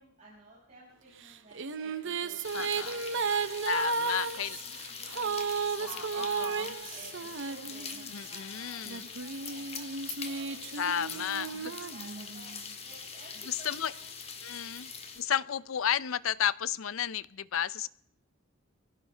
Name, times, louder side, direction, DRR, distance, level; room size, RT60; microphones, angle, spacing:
voice 1, 0.0-14.1, right 2 dB, 40° right, -6 dB, 5.7 m, -54 dB
sound 1, 1.2-8.2 8.9-12.6, right 5 dB, 65° right, 0.8 m, -34 dB
sound 2, 2.4-15.2, left 5 dB, 30° left, 1.7 m, -43 dB
voice 2, 2.5-2.9 3.7-4.6 5.8-6.7 8.1-9.1 10.8-11.5 13.5-13.9 14.4-14.9 15.2-17.9, left 9 dB, 75° left, 18 dB, 0.6 m, -33 dB
23.5 x 16.0 x 3.4 m, 0.72 s
head